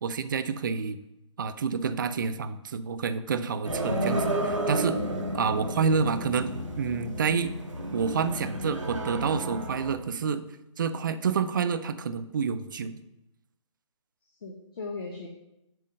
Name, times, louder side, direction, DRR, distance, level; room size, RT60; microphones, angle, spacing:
voice 1, 0.0-1.0 1.4-4.3 4.7-5.0 5.3-7.5 7.9-10.4 10.8-13.0, right 6 dB, 40° right, 11 dB, 0.5 m, -28 dB
sound 1, 3.6-9.9, right 1 dB, 70° right, 1.5 m, -32 dB
voice 2, 3.9-4.4 14.4-15.3, left 2 dB, 45° left, 2 dB, 1.0 m, -36 dB
7.5 x 3.7 x 6.4 m, 0.89 s
figure-of-eight pair, 140°, 16 cm